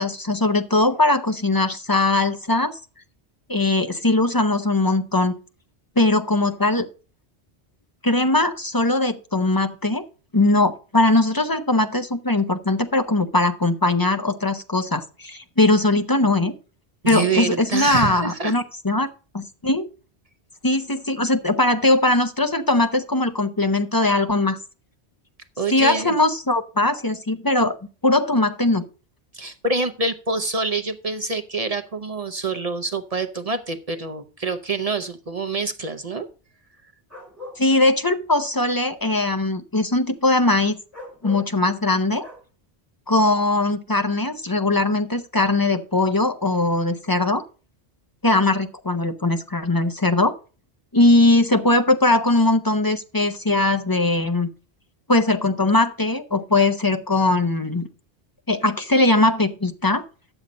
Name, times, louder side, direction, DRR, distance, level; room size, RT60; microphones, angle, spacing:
voice 1, 0.0-2.8 3.5-5.3 6.0-6.9 8.0-10.0 10.3-16.5 17.1-19.1 19.3-19.9 20.6-24.6 25.7-27.7 28.0-28.8 37.6-40.8 41.2-42.2 43.1-47.4 48.2-50.3 50.9-54.5 55.1-57.9 58.5-60.0, left 2 dB, 25° left, 7 dB, 0.7 m, -20 dB
voice 2, 17.0-18.5 25.6-26.1 29.3-36.3, right 3 dB, 40° right, 9 dB, 0.8 m, -26 dB
sound 1, 37.1-37.6 40.9-41.5 42.2-42.4, left 1 dB, 15° right, 3.7 m, -39 dB
10.0 x 7.2 x 5.2 m, 0.36 s
omnidirectional pair, 1.1 m